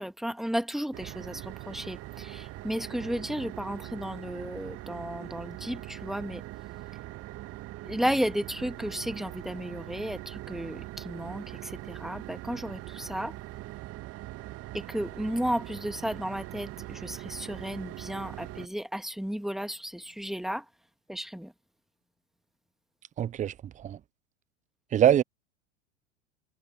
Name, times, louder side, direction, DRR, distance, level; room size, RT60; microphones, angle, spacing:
voice 1, 0.0-6.4 7.8-13.3 14.7-20.6 21.1-21.5, equal, ahead, 2.2 m, -33 dB
sound 1, 0.9-18.7, right 16 dB, 40° right, 2.1 m, -42 dB
voice 2, 23.2-23.5 23.8-24.0 24.9-25.2, right 10 dB, 20° right, 0.7 m, -22 dB
figure-of-eight pair, 90°, 38 cm